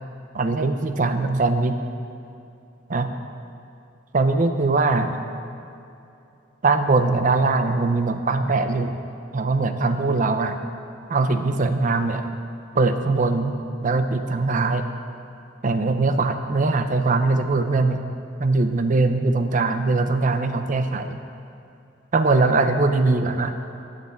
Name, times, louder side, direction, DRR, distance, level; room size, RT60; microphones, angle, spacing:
voice 1, 0.3-1.8 2.9-3.1 4.1-5.2 6.6-8.9 9.3-10.6 11.1-12.3 12.7-14.8 15.6-18.0 18.4-21.2 22.1-23.5, right 3 dB, 45° right, 8 dB, 0.6 m, -21 dB
10.0 x 6.7 x 7.9 m, 2.7 s
head